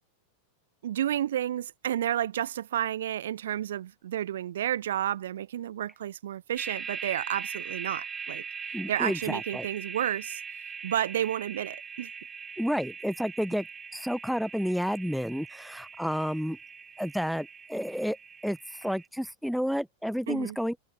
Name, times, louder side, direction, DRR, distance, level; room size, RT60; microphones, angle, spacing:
voice 1, 0.8-8.4 8.9-10.4 10.8-12.1 20.3-20.6, right 11 dB, 60° right, 0.9 m, -31 dB
sound 1, 6.5-19.0, right 6 dB, 20° right, 4.7 m, -41 dB
voice 2, 8.7-9.7 12.6-13.7 13.9-16.6 17.0-18.2 18.4-20.8, equal, ahead, 0.4 m, -30 dB
figure-of-eight pair, 90°, 0 cm